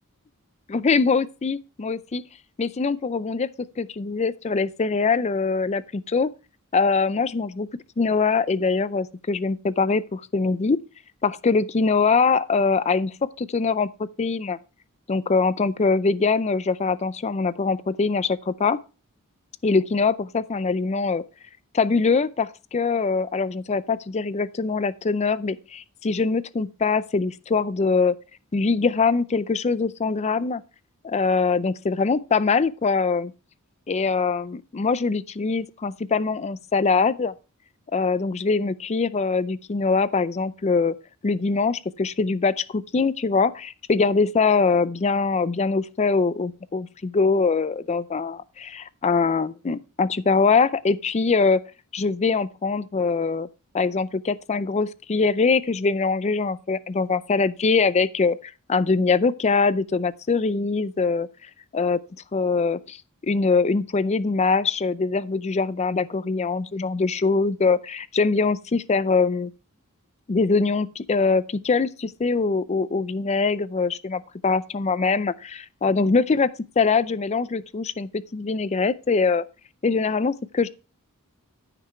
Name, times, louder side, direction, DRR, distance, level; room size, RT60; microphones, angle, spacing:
voice 1, 0.7-2.2 2.6-3.5 3.8-6.3 6.7-7.7 8.0-10.8 11.2-13.9 14.2-14.6 15.1-18.8 19.6-21.2 21.7-28.2 28.5-30.6 31.0-33.3 33.9-37.3 37.9-41.0 41.2-51.6 51.9-53.5 53.7-61.3 61.7-62.0 62.3-63.0 63.2-69.5 70.3-79.4 79.8-80.7, left 4 dB, 30° left, 0.4 m, -23 dB
14.0 x 6.0 x 3.1 m
head